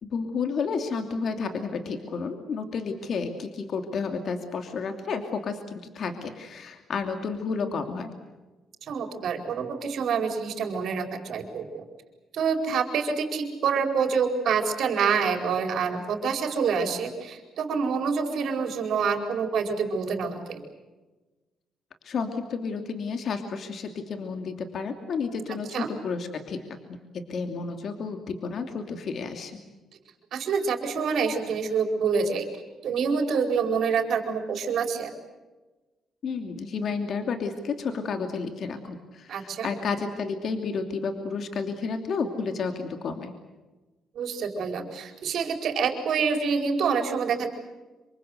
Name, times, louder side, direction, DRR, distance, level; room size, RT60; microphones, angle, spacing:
voice 1, 0.0-8.1 22.0-26.6 27.3-29.6 36.2-43.3, left 5 dB, 60° left, 6 dB, 2.8 m, -31 dB
voice 2, 8.8-11.8 12.3-20.7 25.7-25.9 30.3-32.5 32.8-35.1 39.3-39.7 44.1-47.5, right 5 dB, 70° right, 5 dB, 4.6 m, -27 dB
26.5 x 24.0 x 8.0 m, 1.2 s
cardioid pair, 90°, 0 cm